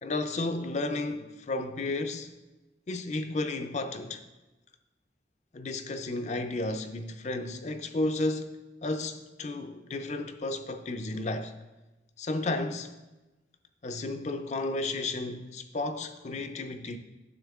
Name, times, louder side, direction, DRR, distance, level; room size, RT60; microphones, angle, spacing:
voice 1, 0.0-2.3 2.9-4.2 5.5-11.5 12.2-12.9 13.8-17.0, left 2 dB, 40° left, 0.5 m, -33 dB
9.9 x 7.2 x 3.5 m
head